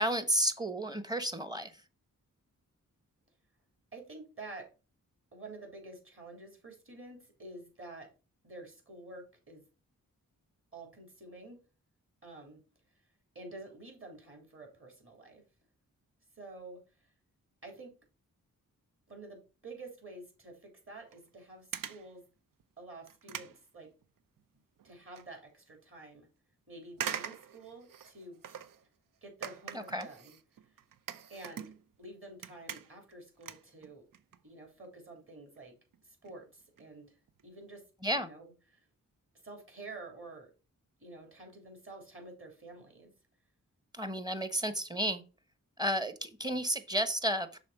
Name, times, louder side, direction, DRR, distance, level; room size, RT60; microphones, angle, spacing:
voice 1, 0.0-1.8 29.7-30.1 38.0-38.3 43.9-45.2 45.8-47.6, right 1 dB, 10° right, 1.1 m, -32 dB
voice 2, 3.9-4.7 5.3-8.1 8.4-9.6 10.7-11.6 12.2-12.6 13.4-15.4 16.4-16.8 17.6-17.9 19.1-22.2 22.8-23.9 24.8-26.3 26.7-28.4 29.2-30.4 31.3-34.1 34.4-35.8 36.0-37.1 37.4-37.8 38.1-38.5 39.4-40.5 41.0-43.1, right 2 dB, 40° right, 3.7 m, -49 dB
sound 1, 21.1-21.3 21.7-22.1 22.6-22.7 23.1-24.4 24.8-25.3 25.7-25.8 26.9-28.9 29.4-32.1 32.3-33.1 33.4-34.4 34.7-34.9 35.6-35.7 35.9-36.0 36.3-36.4 36.6-36.9 37.3-37.4 37.7-37.8, right 8 dB, 75° right, 0.6 m, -43 dB
6.3 x 3.6 x 5.7 m
cardioid pair, 50°, 34 cm